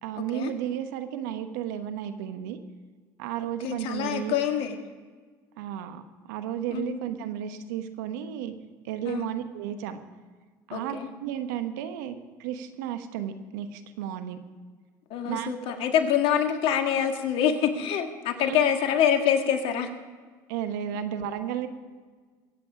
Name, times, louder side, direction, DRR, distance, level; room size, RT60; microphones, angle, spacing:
voice 1, 0.0-2.6 3.2-4.3 5.6-8.5 8.8-10.0 10.7-14.4 15.2-15.9 18.4-18.6 20.5-21.7, right 10 dB, 80° right, 9 dB, 1.1 m, -33 dB
voice 2, 3.6-4.8 6.7-7.0 9.1-9.3 10.7-11.1 15.1-19.9, left 8 dB, 65° left, 5 dB, 1.9 m, -25 dB
22.5 x 8.6 x 5.1 m, 1.5 s
hypercardioid pair, 75°, 10 cm